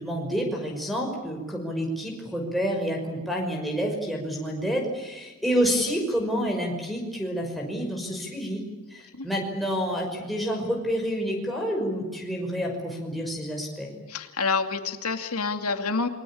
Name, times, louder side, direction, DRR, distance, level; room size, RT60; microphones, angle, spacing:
voice 1, 0.0-8.6 8.9-13.9, equal, ahead, -1 dB, 5.8 m, -28 dB
voice 2, 14.1-16.1, left 4 dB, 85° left, 7 dB, 2.5 m, -27 dB
29.0 x 23.0 x 8.7 m, 1.2 s
head